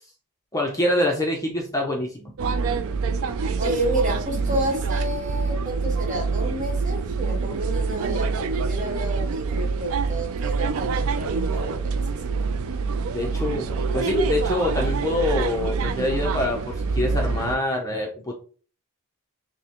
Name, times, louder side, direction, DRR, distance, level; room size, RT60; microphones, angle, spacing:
voice 1, 0.5-2.3 13.1-18.3, left 1 dB, 15° left, 0 dB, 0.6 m, -25 dB
sound 1, 2.4-17.6, right 4 dB, 65° right, 0.4 m, -26 dB
voice 2, 3.6-12.4, right 1 dB, 35° right, 1 dB, 1.2 m, -30 dB
5.8 x 2.1 x 2.9 m, 0.40 s
head